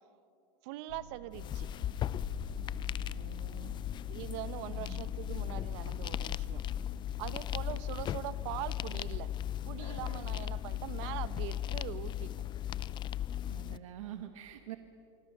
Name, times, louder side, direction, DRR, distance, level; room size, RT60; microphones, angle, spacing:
voice 1, 0.6-1.7 4.1-6.6 7.2-9.3 9.6-12.3, right 15 dB, 60° right, 15 dB, 1.0 m, -42 dB
sound 1, 0.9-13.6, right 1 dB, 75° left, 1.9 m, -52 dB
sound 2, 1.3-13.8, left 11 dB, 30° left, 0.5 m, -37 dB
voice 2, 2.6-3.7 4.7-5.1 13.5-14.8, right 11 dB, 85° right, 7 dB, 1.5 m, -47 dB
25.5 x 24.5 x 6.7 m, 2.8 s
supercardioid pair, 125°, 16 cm